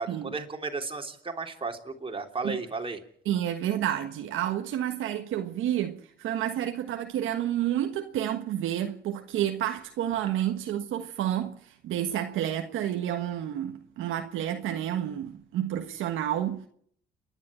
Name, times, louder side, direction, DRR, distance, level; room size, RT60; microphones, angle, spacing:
voice 1, 0.0-3.0, right 4 dB, 25° right, 3.3 m, -34 dB
voice 2, 3.2-16.7, right 11 dB, 85° right, 1.5 m, -30 dB
29.5 x 11.0 x 9.0 m
cardioid pair, 90°, 20 cm